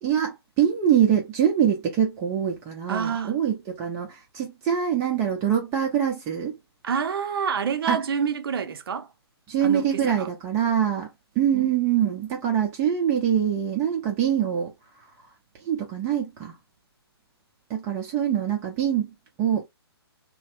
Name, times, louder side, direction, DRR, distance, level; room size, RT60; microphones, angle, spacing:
voice 1, 0.0-6.6 7.9-8.0 9.5-15.3 15.5-16.6 17.7-19.6, right 9 dB, 20° right, 0.7 m, -24 dB
voice 2, 2.9-3.4 6.8-9.1 9.6-10.3 11.5-11.7 12.0-12.1, right 6 dB, 60° right, 0.6 m, -28 dB
3.1 x 2.1 x 2.9 m
hypercardioid pair, 145°, 14 cm